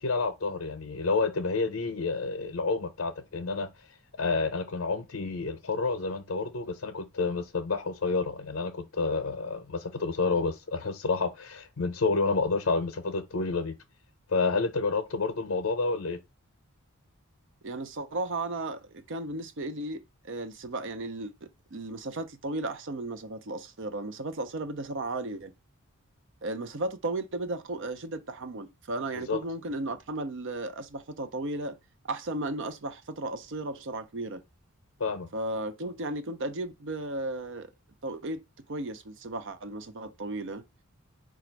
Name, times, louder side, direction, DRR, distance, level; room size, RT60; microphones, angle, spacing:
voice 1, 0.0-3.7 4.2-13.8 14.3-16.2 29.2-29.4 35.0-35.3, left 4 dB, 65° left, 0.6 m, -29 dB
voice 2, 17.6-25.5 26.4-31.8 32.0-34.4 35.3-37.7 38.0-38.4 38.7-40.6, right 2 dB, 60° right, 0.6 m, -35 dB
5.0 x 2.3 x 4.5 m
head